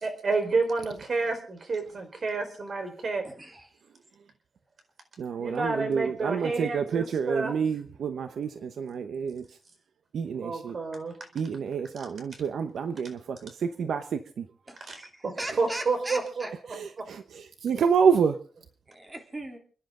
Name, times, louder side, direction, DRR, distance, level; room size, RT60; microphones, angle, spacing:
voice 1, 0.0-3.2 5.4-7.6 10.3-11.1 14.9-15.0 15.2-15.3 15.6-17.0, right 3 dB, 45° right, 4.4 m, -30 dB
voice 2, 3.2-3.7 14.7-16.5 18.9-19.6, right 1 dB, 20° right, 3.4 m, -39 dB
voice 3, 5.2-9.4 10.1-10.8 11.3-14.4 16.7-18.4, right 6 dB, 75° right, 0.9 m, -28 dB
29.5 x 10.5 x 3.8 m
wide cardioid pair, 120°, 0 cm